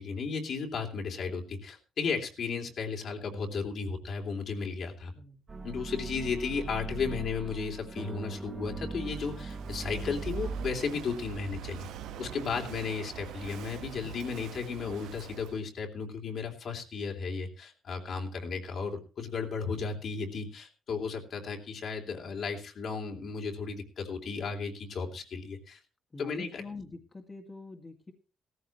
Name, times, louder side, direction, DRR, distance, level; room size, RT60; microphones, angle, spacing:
voice 1, 0.0-5.1 5.6-11.9 12.2-25.8 26.2-26.6, left 5 dB, 60° left, 2 dB, 3.1 m, -34 dB
sound 1, 5.5-10.7, right 3 dB, 30° right, 1.4 m, -39 dB
Walk footsteps / Wind / Waves surf, 9.0-15.6, right 9 dB, 85° right, 1.1 m, -44 dB
voice 2, 14.0-14.5 26.1-28.1, left 3 dB, 25° left, 2 dB, 2.1 m, -45 dB
16.5 x 14.5 x 3.1 m, 0.34 s
cardioid pair, 90°, 0 cm